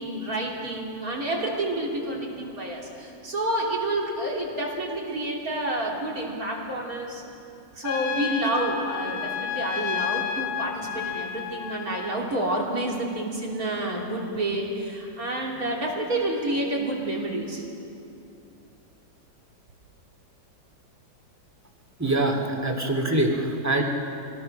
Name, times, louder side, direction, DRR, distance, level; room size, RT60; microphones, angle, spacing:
voice 1, 0.0-7.2 7.7-17.7, right 1 dB, 50° right, -2 dB, 3.6 m, -29 dB
Trumpet, 7.8-12.2, left 9 dB, 75° left, 1.6 m, -31 dB
voice 2, 22.0-23.8, right 2 dB, 10° right, 1 dB, 2.2 m, -24 dB
25.0 x 18.0 x 6.5 m, 2.7 s
omnidirectional pair, 2.0 m